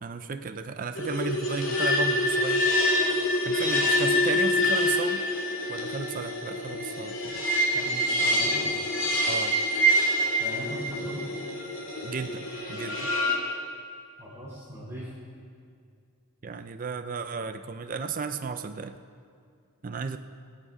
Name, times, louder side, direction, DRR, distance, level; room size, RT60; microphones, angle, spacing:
voice 1, 0.0-2.7 3.4-5.3 5.7-7.3 9.3-9.6 12.0-13.1 16.4-18.9 19.8-20.2, right 4 dB, 40° right, 9 dB, 0.4 m, -34 dB
sound 1, 0.9-13.4, left 1 dB, 60° left, 2.5 m, -26 dB
voice 2, 7.7-8.8 10.4-11.3 14.2-15.2, equal, 15° right, -9 dB, 3.2 m, -39 dB
21.5 x 8.7 x 4.9 m, 2.3 s
head